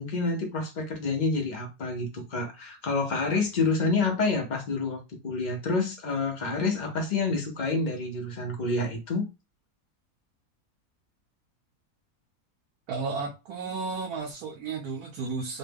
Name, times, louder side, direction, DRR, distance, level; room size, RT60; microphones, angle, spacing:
voice 1, 0.0-9.2, left 3 dB, 55° left, 0.5 m, -28 dB
voice 2, 12.9-15.6, right 4 dB, 90° right, 1.1 m, -33 dB
3.0 x 2.1 x 3.4 m
omnidirectional pair, 1.6 m